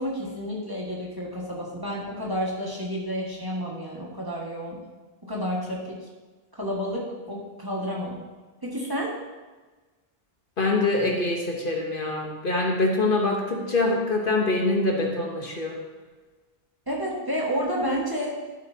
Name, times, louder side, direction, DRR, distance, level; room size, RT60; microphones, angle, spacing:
voice 1, 0.0-4.8 5.3-6.0 6.5-8.2 8.6-9.1 16.9-18.4, equal, 20° right, -4 dB, 1.8 m, -30 dB
voice 2, 10.6-15.8, left 2 dB, 55° left, 0 dB, 1.3 m, -24 dB
12.5 x 7.9 x 2.8 m, 1.3 s
omnidirectional pair, 1.1 m